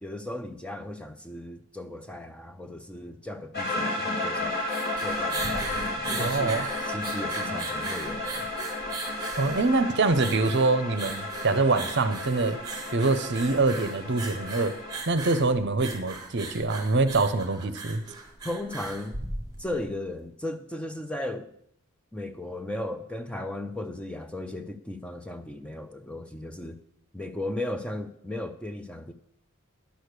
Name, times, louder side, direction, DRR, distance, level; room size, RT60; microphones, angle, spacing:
voice 1, 0.0-5.6 6.1-8.5 18.4-19.2 19.6-21.5 22.1-26.8 27.1-29.1, left 1 dB, 5° left, 0.4 m, -36 dB
sound 1, 3.5-15.0, left 1 dB, 45° left, 2.9 m, -33 dB
sound 2, 4.4-19.8, right 2 dB, 20° right, 1.4 m, -38 dB
voice 2, 6.2-6.6 9.4-12.6 12.9-14.7 15.1-18.0, right 3 dB, 55° right, 0.7 m, -24 dB
10.5 x 6.5 x 6.6 m
head